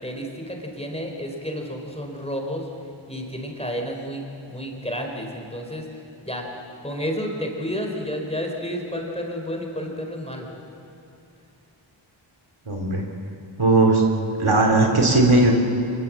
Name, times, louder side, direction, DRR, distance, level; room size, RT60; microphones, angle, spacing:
voice 1, 0.0-2.6 3.1-5.9 6.2-6.4 6.8-10.5, equal, 10° left, 1 dB, 4.3 m, -31 dB
voice 2, 12.7-13.0 13.6-14.0 14.4-15.5, right 2 dB, 75° right, 1 dB, 3.2 m, -17 dB
26.0 x 22.0 x 7.6 m, 2.8 s
wide cardioid pair, 50°, 49 cm